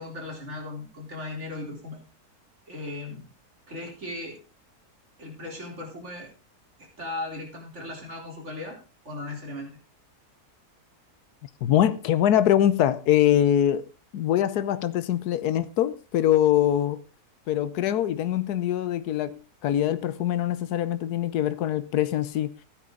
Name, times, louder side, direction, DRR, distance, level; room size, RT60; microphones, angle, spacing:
voice 1, 0.0-2.0 2.7-3.3 3.7-4.4 5.2-6.3 6.8-8.8 9.0-9.7, left 2 dB, 45° right, 4.0 m, -37 dB
voice 2, 11.6-13.9 14.1-17.0 17.5-22.5, left 11 dB, 85° left, 1.3 m, -23 dB
15.0 x 9.3 x 3.8 m
omnidirectional pair, 1.7 m